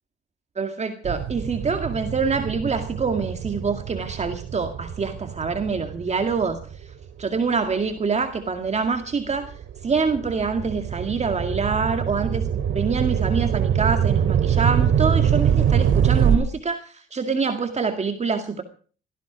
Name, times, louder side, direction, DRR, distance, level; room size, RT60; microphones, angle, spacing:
voice 1, 0.6-6.6 7.2-9.5 9.8-18.6, right 5 dB, 35° right, 6 dB, 2.1 m, -25 dB
sound 1, 1.0-7.8 8.4-16.3, right 8 dB, 70° right, 2.8 m, -24 dB
17.5 x 14.5 x 5.1 m, 0.41 s
cardioid pair, 90°, 20 cm